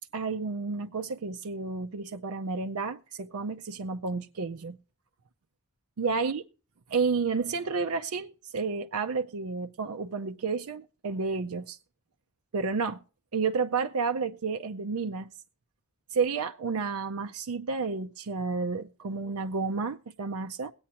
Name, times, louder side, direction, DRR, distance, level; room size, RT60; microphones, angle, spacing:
voice 1, 0.1-4.8 6.0-6.4 6.9-11.8 12.5-13.0 13.3-15.3 16.1-20.7, right 4 dB, 75° right, 0.5 m, -31 dB
21.5 x 8.6 x 2.8 m
head